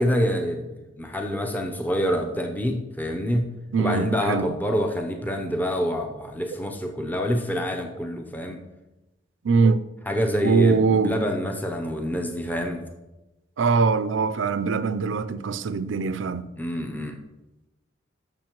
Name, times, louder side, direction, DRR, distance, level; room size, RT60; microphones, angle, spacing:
voice 1, 0.0-3.5 3.8-8.6 10.1-12.9 16.6-17.2, equal, 10° left, 0.6 m, -26 dB
voice 2, 3.7-4.5 9.4-9.8 10.4-11.2 13.6-16.5, right 4 dB, 80° right, 0.5 m, -22 dB
13.5 x 6.3 x 3.0 m
head